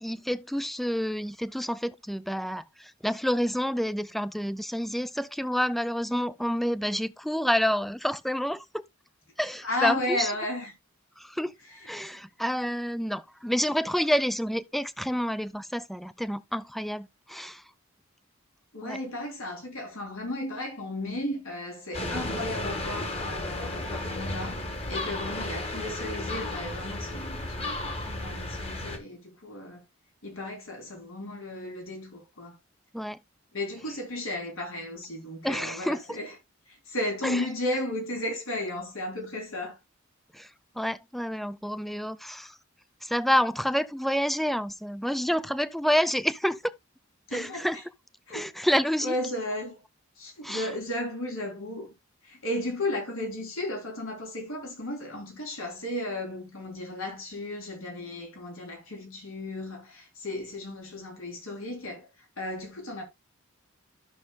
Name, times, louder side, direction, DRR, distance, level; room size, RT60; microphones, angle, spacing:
voice 1, 0.0-8.8 9.4-10.3 11.2-11.5 11.8-17.6 18.8-19.0 32.9-33.2 35.4-36.0 37.2-37.4 40.3-40.5 40.8-42.6 43.0-46.7 47.3-47.8 48.3-49.1 50.4-50.7, equal, ahead, 0.4 m, -28 dB
voice 2, 9.6-10.7 11.8-11.9 18.7-24.6 24.9-29.8 30.2-32.6 33.5-36.3 36.8-39.8 47.3-47.8 48.3-48.5 49.0-49.8 50.2-51.9 52.2-62.1 62.4-63.0, left 1 dB, 85° left, 3.3 m, -34 dB
sound 1, 21.9-29.0, left 1 dB, 30° left, 1.5 m, -33 dB
13.0 x 6.3 x 2.2 m
head